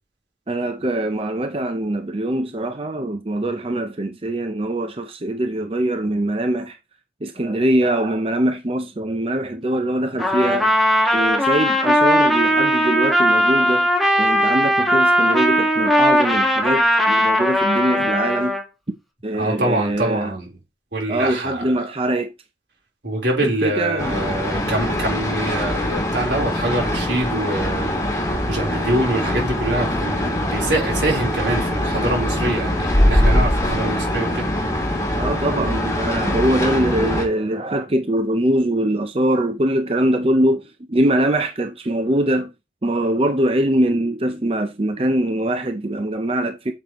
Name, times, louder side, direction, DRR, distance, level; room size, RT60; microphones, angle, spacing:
voice 1, 0.5-6.8 7.2-10.7 11.1-13.9 14.2-18.6 19.2-20.3 21.1-22.3 23.4-24.2 35.2-42.5 42.8-46.7, right 1 dB, 30° right, 0.6 m, -22 dB
Trumpet, 10.2-18.6, equal, ahead, 1.7 m, -18 dB
voice 2, 19.3-20.5 20.9-21.9 23.0-27.9 28.5-34.5, right 1 dB, 80° right, 4.0 m, -24 dB
sound 1, 24.0-37.3, left 1 dB, 20° left, 2.2 m, -22 dB
9.2 x 7.3 x 3.1 m
head